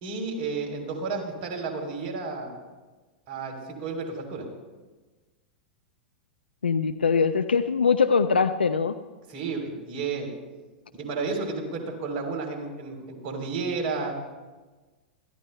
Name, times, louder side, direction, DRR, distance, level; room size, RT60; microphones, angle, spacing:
voice 1, 0.0-2.5 3.3-4.5 9.3-10.3 10.9-14.1, right 4 dB, 50° right, 1 dB, 3.5 m, -32 dB
voice 2, 6.6-9.0, left 5 dB, 90° left, 9 dB, 0.5 m, -22 dB
23.5 x 14.5 x 2.2 m, 1.3 s
hypercardioid pair, 100°, 5 cm